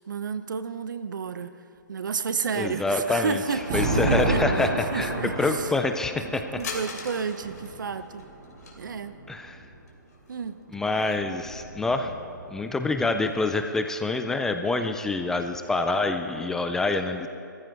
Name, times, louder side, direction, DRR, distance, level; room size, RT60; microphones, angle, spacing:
voice 1, 0.1-1.5 1.9-5.7 6.2-6.3 6.6-8.2 8.8-9.2 10.3-10.6, right 6 dB, 75° right, 12 dB, 0.9 m, -31 dB
Thunder, 2.5-9.7 10.7-12.5, right 2 dB, 35° right, 2.8 m, -31 dB
voice 2, 2.6-3.4 3.7-5.1 5.4-6.4 9.3-9.6 10.7-12.1 12.5-17.3, left 3 dB, 5° left, 7 dB, 0.4 m, -26 dB
sound 1, 6.6-8.8 9.9-10.6 11.0-11.1 12.0-12.1 12.6-13.6, left 4 dB, 55° left, 2.8 m, -41 dB
17.0 x 14.5 x 4.6 m, 2.3 s
hypercardioid pair, 155°, 11 cm